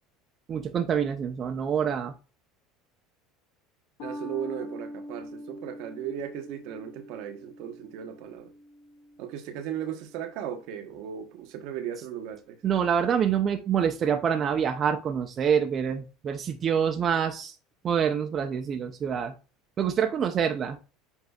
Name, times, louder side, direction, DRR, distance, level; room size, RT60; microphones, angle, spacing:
voice 1, 0.5-2.1 12.6-17.6 17.8-19.3 19.8-20.8, right 8 dB, 40° right, 0.6 m, -26 dB
sound 1, 4.0-10.7, equal, 80° left, 1.6 m, -44 dB
voice 2, 4.0-8.5 9.2-12.6, right 9 dB, 65° right, 0.9 m, -36 dB
8.0 x 2.7 x 2.3 m
hypercardioid pair, 90°, 0 cm